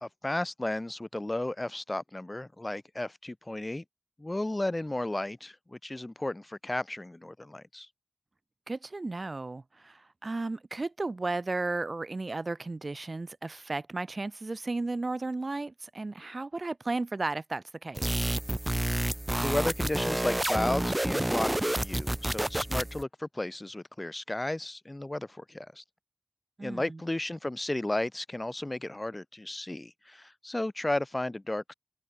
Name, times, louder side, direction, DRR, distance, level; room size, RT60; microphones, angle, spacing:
voice 1, 0.0-3.8 4.2-7.9 19.4-25.8 26.6-31.7, left 1 dB, 35° left, 1.4 m, -34 dB
voice 2, 8.7-18.3 26.6-27.0, right 3 dB, 75° right, 3.3 m, -34 dB
sound 1, 18.0-23.0, right 1 dB, 25° right, 1.8 m, -29 dB
wide cardioid pair, 55°, 0 cm